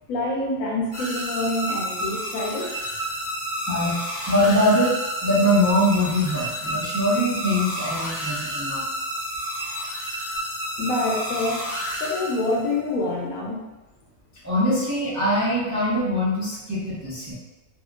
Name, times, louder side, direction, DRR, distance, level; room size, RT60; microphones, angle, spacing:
voice 1, 0.1-2.7 10.8-11.7 12.0-13.6, left 2 dB, 70° left, -2 dB, 0.9 m, -26 dB
sound 1, 0.9-12.8, equal, 30° left, 0.8 m, -30 dB
voice 2, 3.7-8.8 14.4-17.3, equal, 25° right, -10 dB, 0.4 m, -22 dB
2.8 x 2.4 x 2.3 m, 1.1 s
omnidirectional pair, 1.7 m